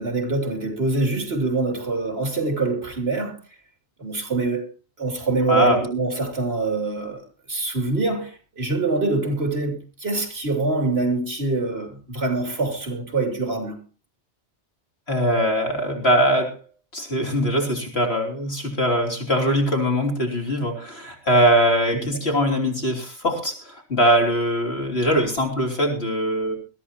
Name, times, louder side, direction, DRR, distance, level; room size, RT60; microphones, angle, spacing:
voice 1, 0.0-3.4 4.0-4.7 5.0-7.2 7.5-13.8 21.9-22.0, right 3 dB, 60° right, 3.1 m, -24 dB
voice 2, 5.5-5.8 15.1-16.6 16.9-26.6, equal, 60° left, 3.6 m, -21 dB
21.0 x 14.0 x 2.9 m
omnidirectional pair, 1.2 m